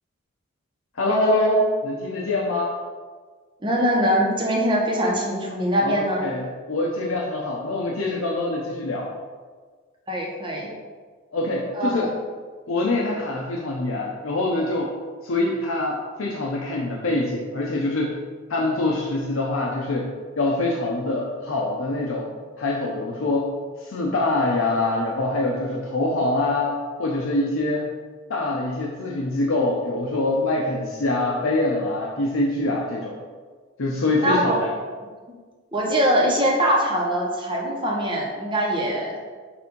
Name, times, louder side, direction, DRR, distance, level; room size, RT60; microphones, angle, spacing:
voice 1, 1.0-2.7 5.8-9.1 11.3-12.1 12.7-14.9 15.2-18.2 18.5-20.1 20.4-22.3 22.6-23.5 23.8-26.7 27.0-27.9 28.3-33.1 33.8-34.7, left 2 dB, 75° left, -2 dB, 0.7 m, -24 dB
voice 2, 3.6-6.2 10.1-10.7 11.7-11.9 34.2-34.6 35.7-39.1, equal, 25° right, -2 dB, 1.0 m, -22 dB
6.9 x 2.6 x 5.3 m, 1.5 s
head